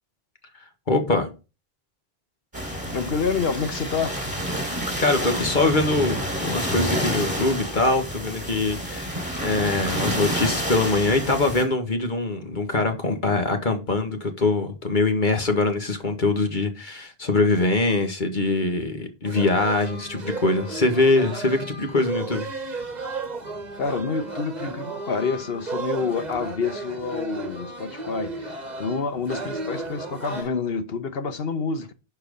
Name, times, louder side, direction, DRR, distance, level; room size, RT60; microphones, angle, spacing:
voice 1, 0.9-1.3 5.0-9.1 9.4-22.5, left 3 dB, 50° left, 1.9 m, -23 dB
sound 1, 2.5-11.6, equal, 20° right, 3.5 m, -29 dB
voice 2, 2.9-4.2 23.8-31.9, left 5 dB, 70° left, 1.3 m, -28 dB
sound 2, 19.2-30.4, right 3 dB, 45° right, 1.4 m, -34 dB
11.5 x 4.8 x 5.3 m
omnidirectional pair, 1.0 m